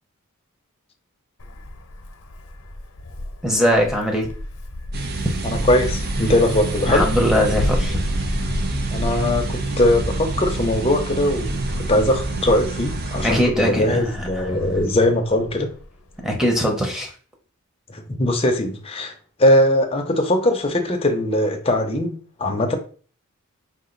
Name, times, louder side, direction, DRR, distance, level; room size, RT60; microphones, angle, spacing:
Wind, 1.4-16.3, left 1 dB, 70° left, 0.8 m, -32 dB
voice 1, 3.4-4.3 6.9-8.0 13.2-14.5 16.2-17.1, equal, ahead, 0.8 m, -21 dB
sound 1, 4.9-13.4, right 2 dB, 45° right, 0.5 m, -27 dB
voice 2, 5.4-7.1 8.9-15.7 17.9-19.1 19.4-22.8, left 1 dB, 25° left, 0.6 m, -20 dB
4.9 x 2.5 x 3.9 m
head